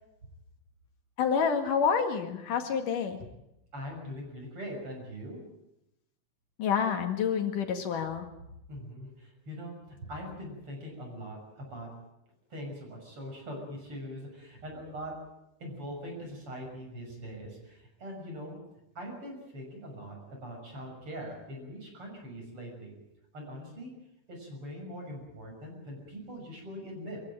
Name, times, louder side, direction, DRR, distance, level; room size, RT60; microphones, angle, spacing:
voice 1, 1.2-3.2 6.6-8.3, left 6 dB, 80° left, 6 dB, 3.5 m, -28 dB
voice 2, 3.7-5.4 8.7-11.9 12.5-15.1 15.6-18.6 19.0-22.9 23.3-23.9 24.3-27.2, equal, 40° right, 1 dB, 7.3 m, -42 dB
23.5 x 15.0 x 8.9 m, 0.88 s
omnidirectional pair, 3.6 m